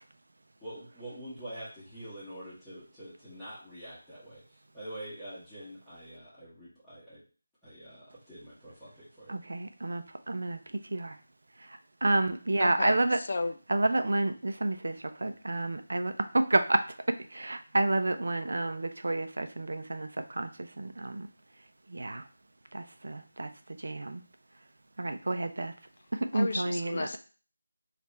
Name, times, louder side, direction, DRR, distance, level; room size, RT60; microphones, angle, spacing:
voice 1, 0.6-4.4 4.7-7.2 7.6-9.3, right 1 dB, 5° left, -15 dB, 1.0 m, -45 dB
voice 2, 9.3-10.6 10.9-11.2 11.7-13.2 13.7-16.8 17.3-21.3 21.9-22.2 22.7-23.5 23.8-24.2 25.0-25.7 26.1-27.1, right 2 dB, 70° right, 8 dB, 0.5 m, -30 dB
voice 3, 12.6-13.6 26.3-27.2, left 3 dB, 45° left, 8 dB, 0.4 m, -33 dB
3.4 x 2.4 x 4.2 m, 0.37 s
figure-of-eight pair, 170°, 0 cm